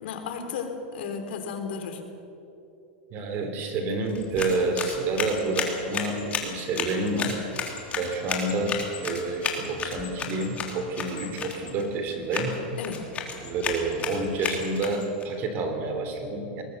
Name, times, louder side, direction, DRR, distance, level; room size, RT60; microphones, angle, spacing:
voice 1, 0.0-2.0 12.8-13.1, left 6 dB, 75° left, 5 dB, 3.6 m, -34 dB
voice 2, 3.1-7.4 8.0-12.6 13.4-16.6, right 2 dB, 40° right, 6 dB, 3.5 m, -29 dB
sound 1, 4.1-15.2, left 6 dB, 25° left, 3.1 m, -34 dB
22.5 x 20.0 x 6.8 m, 2.8 s
supercardioid pair, 150°, 6 cm